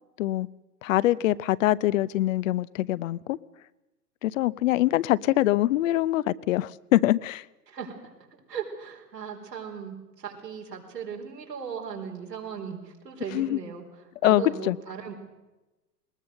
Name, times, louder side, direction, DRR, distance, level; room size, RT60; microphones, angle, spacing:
voice 1, 0.8-3.4 4.2-7.4 13.3-13.6 14.2-14.8, left 15 dB, 55° left, 19 dB, 0.6 m, -24 dB
voice 2, 8.5-15.1, right 7 dB, 85° right, 1 dB, 4.4 m, -37 dB
21.0 x 19.5 x 6.5 m, 1.1 s
hypercardioid pair, 110°, 48 cm